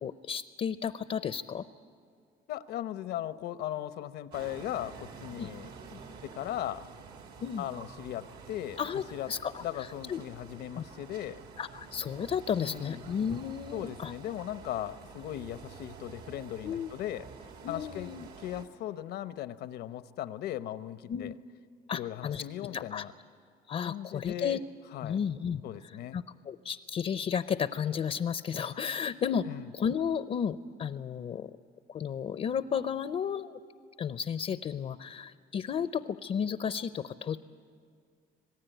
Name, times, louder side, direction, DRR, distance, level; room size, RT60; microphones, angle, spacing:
voice 1, 0.0-1.6 5.4-5.5 7.4-7.6 8.8-9.0 9.3-10.2 10.8-10.9 11.6-14.1 16.6-16.9 17.6-18.3 21.1-21.3 21.9-22.5 22.7-23.0 23.7-24.6 25.0-25.6 26.1-29.5 29.7-31.5 31.9-33.6 34.0-37.4, left 7 dB, 40° left, 13 dB, 0.5 m, -33 dB
voice 2, 2.5-6.9 7.6-8.8 9.1-9.3 9.6-11.4 12.6-13.1 13.7-17.3 17.7-18.1 18.4-21.3 21.9-23.1 23.8-24.6 24.9-25.2 25.6-26.2 29.5-29.7, left 12 dB, 75° left, 14 dB, 0.8 m, -38 dB
sound 1, 4.3-18.6, right 5 dB, 75° right, 2.5 m, -49 dB
26.0 x 18.0 x 9.1 m, 2.2 s
cardioid pair, 110°, 17 cm